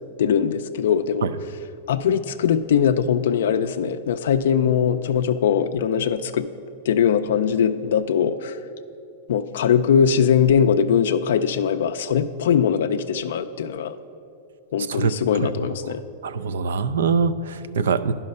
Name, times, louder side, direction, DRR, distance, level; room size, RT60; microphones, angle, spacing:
voice 1, 0.2-1.3 1.9-6.5 6.9-8.6 9.3-13.9 14.7-16.0, left 7 dB, 80° left, 8 dB, 0.3 m, -21 dB
voice 2, 16.2-18.1, right 5 dB, 90° right, 13 dB, 0.4 m, -23 dB
10.5 x 5.6 x 5.3 m, 2.7 s
supercardioid pair, 140°, 0 cm